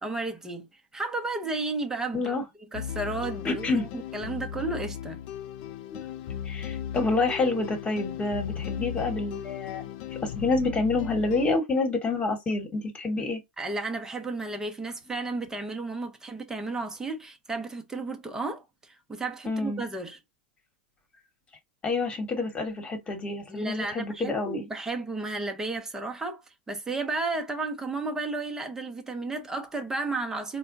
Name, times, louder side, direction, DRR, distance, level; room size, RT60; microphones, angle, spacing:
voice 1, 0.0-0.7 0.9-2.4 2.7-3.9 4.1-5.2 13.6-20.2 23.5-30.6, right 3 dB, 10° right, 0.9 m, -33 dB
voice 2, 2.1-2.4 3.4-3.9 5.9-6.0 6.4-9.8 10.1-13.4 19.4-19.8 21.8-24.6, left 3 dB, 20° left, 1.4 m, -28 dB
sound 1, 2.7-11.6, left 10 dB, 55° left, 0.4 m, -36 dB
4.2 x 2.3 x 2.6 m
hypercardioid pair, 110°, 5 cm